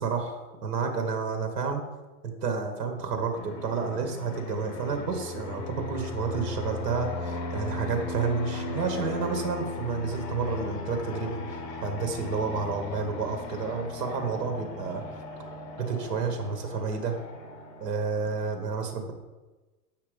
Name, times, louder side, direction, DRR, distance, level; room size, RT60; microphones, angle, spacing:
voice 1, 0.0-1.8 2.2-15.0 15.8-17.2 17.8-19.1, right 5 dB, 75° right, 5 dB, 1.8 m, -30 dB
Fixed-wing aircraft airplane, 3.3-18.5, left 3 dB, 35° left, 1.5 m, -38 dB
8.5 x 5.7 x 5.1 m, 1.2 s
supercardioid pair, 160°, 47 cm